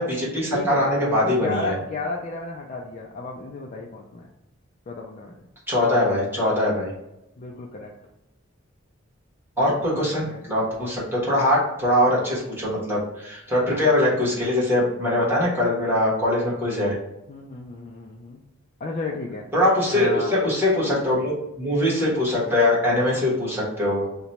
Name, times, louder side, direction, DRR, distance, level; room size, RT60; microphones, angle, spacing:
voice 1, 0.0-1.7 5.7-6.9 9.6-16.9 19.5-24.1, left 1 dB, 10° right, -7 dB, 1.2 m, -22 dB
voice 2, 0.5-0.8 1.1-4.3 4.9-5.4 7.4-7.9 9.6-10.4 17.3-18.4 18.8-19.5 19.9-20.4, left 3 dB, 35° left, -2 dB, 0.4 m, -33 dB
2.9 x 2.2 x 4.0 m, 0.90 s
head